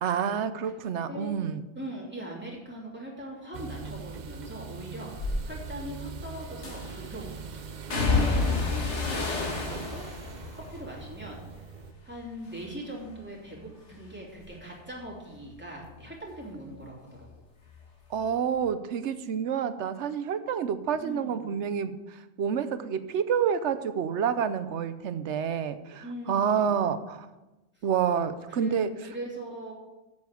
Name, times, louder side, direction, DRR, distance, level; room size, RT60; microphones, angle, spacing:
voice 1, 0.0-1.6 18.1-27.3 27.8-28.9, right 7 dB, 80° right, 12 dB, 1.0 m, -28 dB
voice 2, 0.6-1.3 1.7-7.3 7.6-10.3 10.5-11.4 12.0-17.3 21.0-21.6 26.0-26.9 27.7-27.9 28.5-29.7, right 1 dB, 10° right, -4 dB, 3.0 m, -41 dB
sound 1, 3.5-11.9, right 5 dB, 50° right, 0.6 m, -42 dB
sound 2, 5.2-5.4 6.6-7.1 7.9-12.1 12.5-13.1 13.5-16.7 17.0-18.1 18.4-18.6, left 3 dB, 85° left, 1.9 m, -31 dB
8.2 x 7.1 x 8.2 m, 1.1 s
omnidirectional pair, 1.2 m